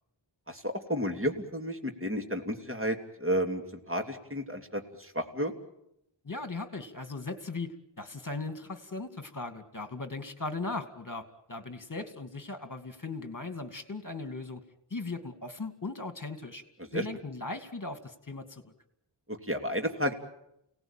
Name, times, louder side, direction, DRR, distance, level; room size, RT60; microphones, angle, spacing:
voice 1, 0.5-5.5 16.9-17.0 19.3-20.1, equal, 25° right, 4 dB, 3.1 m, -32 dB
voice 2, 6.2-14.6 14.9-16.6 16.9-18.7, left 3 dB, 40° left, 9 dB, 2.4 m, -38 dB
29.5 x 18.5 x 9.0 m, 0.81 s
wide cardioid pair, 55°, 47 cm